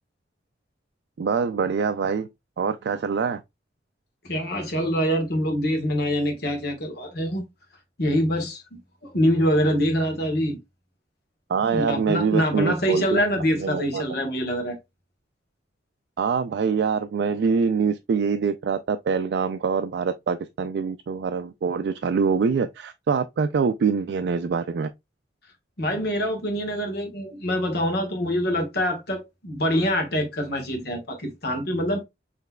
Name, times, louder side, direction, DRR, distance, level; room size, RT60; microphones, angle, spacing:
voice 1, 1.2-2.3 2.6-3.4 11.5-13.2 13.5-14.0 16.2-24.9, right 5 dB, 65° right, 0.3 m, -24 dB
voice 2, 4.2-7.4 8.0-10.6 11.7-14.8 25.8-32.0, equal, 60° left, 1.4 m, -25 dB
5.7 x 3.2 x 2.2 m
head